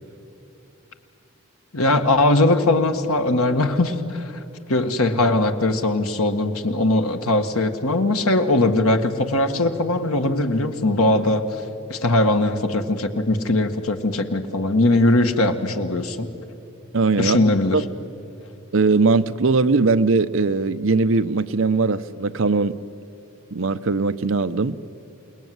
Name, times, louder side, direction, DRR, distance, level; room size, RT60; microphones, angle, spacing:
voice 1, 1.7-4.4 4.7-11.4 11.9-16.3 17.2-17.8, left 2 dB, 90° left, 7 dB, 1.8 m, -20 dB
voice 2, 16.9-17.4 17.7-17.8 18.7-22.8 23.5-24.8, right 3 dB, 65° right, 12 dB, 0.7 m, -20 dB
28.5 x 19.0 x 9.5 m, 2.8 s
head